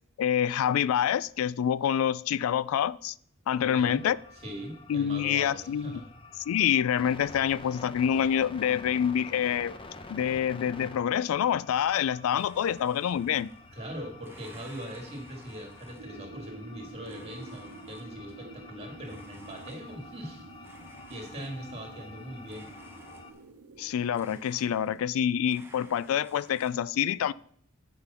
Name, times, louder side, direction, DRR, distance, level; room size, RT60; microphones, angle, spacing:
voice 1, 0.2-3.1 3.5-4.2 4.9-6.0 6.5-9.7 10.1-13.5 23.8-27.3, left 9 dB, 85° left, 0.3 m, -27 dB
voice 2, 3.5-4.0 4.4-6.1 13.7-20.5 21.1-22.7, equal, 30° right, 2.0 m, -41 dB
sound 1, 3.6-23.3, left 3 dB, 25° left, 0.7 m, -48 dB
Domestic sounds home sounds, 12.4-13.8 14.2-16.3 17.0-18.3 19.0-20.2 20.6-21.9 22.5-23.6 24.1-25.2 25.5-26.7, right 1 dB, 10° right, 0.9 m, -55 dB
sound 2, 16.0-24.4, right 3 dB, 90° right, 0.6 m, -49 dB
8.1 x 5.1 x 5.6 m
head